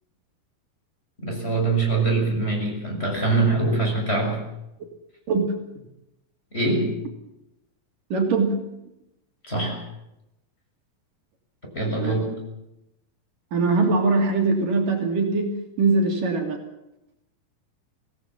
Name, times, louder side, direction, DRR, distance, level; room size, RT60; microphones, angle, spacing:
voice 1, 1.2-4.4 6.5-7.0 9.4-9.8 11.7-12.4, right 3 dB, 15° left, 1 dB, 6.9 m, -23 dB
voice 2, 5.3-5.6 8.1-8.7 12.0-12.2 13.5-16.6, right 3 dB, 65° right, 3 dB, 4.6 m, -22 dB
25.0 x 18.0 x 7.5 m, 0.87 s
omnidirectional pair, 4.1 m